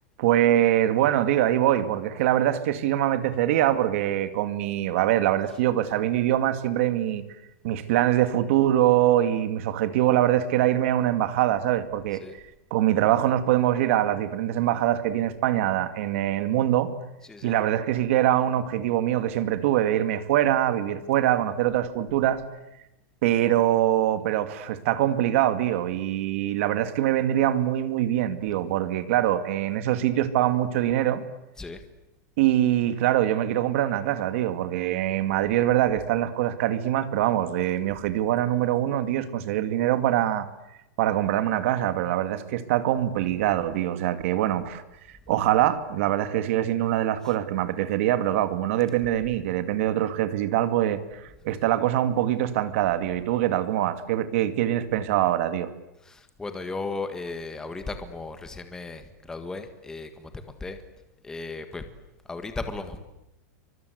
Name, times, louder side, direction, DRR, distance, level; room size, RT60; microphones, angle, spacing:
voice 1, 0.2-7.2 7.6-12.2 12.7-16.9 17.4-22.4 23.2-31.2 32.4-40.5 41.0-44.8 45.3-51.0 51.4-55.7, right 12 dB, 50° right, 11 dB, 2.4 m, -23 dB
voice 2, 17.2-17.6 31.6-31.8 45.3-45.4 47.2-47.4 51.3-51.6 56.0-60.8 61.2-61.8 62.2-63.0, left 3 dB, 5° left, 8 dB, 1.7 m, -36 dB
29.0 x 25.0 x 8.3 m, 0.90 s
supercardioid pair, 180°, 9 cm